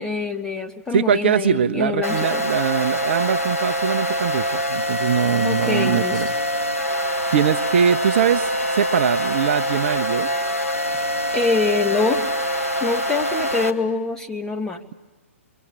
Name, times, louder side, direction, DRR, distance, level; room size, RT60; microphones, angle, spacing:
voice 1, 0.0-2.4 5.4-6.2 11.3-12.3 12.8-14.8, left 4 dB, 10° left, 4 dB, 1.8 m, -24 dB
voice 2, 0.9-6.3 7.3-10.3, right 8 dB, 50° right, 12 dB, 0.9 m, -21 dB
sound 1, 2.0-13.7, equal, 85° left, 2.9 m, -24 dB
28.5 x 23.0 x 8.8 m, 1.2 s
figure-of-eight pair, 125°, 8 cm